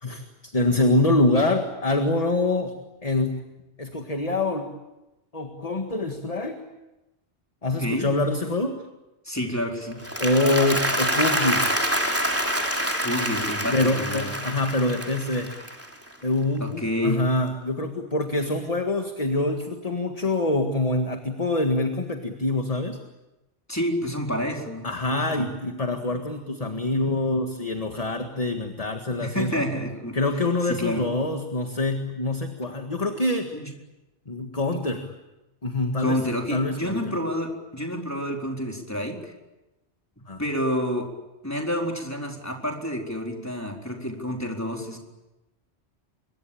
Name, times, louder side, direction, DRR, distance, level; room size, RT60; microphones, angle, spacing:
voice 1, 0.0-2.7 3.0-3.4 3.8-4.7 5.3-6.6 7.6-8.8 10.2-11.7 13.7-15.5 16.2-23.0 24.8-29.6 30.1-33.5 34.3-35.1 35.6-36.2 36.5-37.1 40.3-40.4, left 2 dB, 35° left, 5 dB, 1.9 m, -25 dB
voice 2, 9.2-10.0 13.0-14.4 16.6-17.2 23.7-25.5 29.2-30.2 30.7-31.1 33.5-33.7 36.0-39.3 40.4-41.1 41.4-45.0, equal, 15° left, 1 dB, 4.3 m, -29 dB
Applause, 9.9-16.2, equal, 10° right, 3.1 m, -26 dB
25.5 x 23.0 x 8.7 m, 1.0 s
omnidirectional pair, 1.1 m